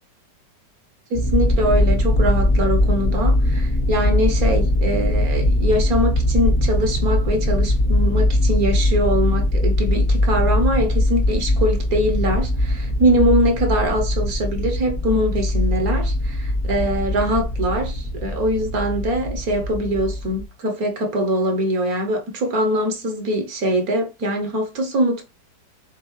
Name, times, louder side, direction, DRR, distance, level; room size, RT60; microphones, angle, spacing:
sound 1, 1.1-20.4, left 1 dB, 35° left, 0.8 m, -21 dB
voice 1, 1.1-25.2, equal, 60° right, 1.4 m, -22 dB
6.7 x 2.6 x 3.0 m
omnidirectional pair, 1.9 m